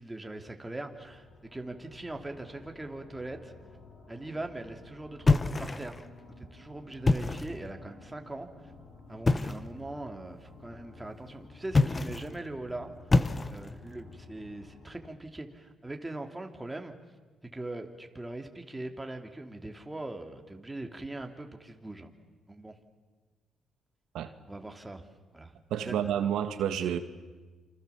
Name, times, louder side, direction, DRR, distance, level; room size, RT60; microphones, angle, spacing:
voice 1, 0.0-3.5 4.1-6.0 6.4-8.7 9.1-16.9 17.5-22.1 22.5-22.7 24.5-25.1 25.3-25.5 25.8-26.1, right 2 dB, 10° right, 3.0 m, -41 dB
sound 1, 0.8-15.1, left 3 dB, 75° left, 6.4 m, -53 dB
sound 2, 5.3-6.1 6.9-7.6 9.2-9.7 11.7-12.3 13.1-13.8, left 3 dB, 25° left, 1.1 m, -26 dB
voice 2, 25.7-27.0, right 9 dB, 80° right, 1.7 m, -29 dB
28.5 x 26.5 x 7.2 m
cardioid pair, 90°, 0 cm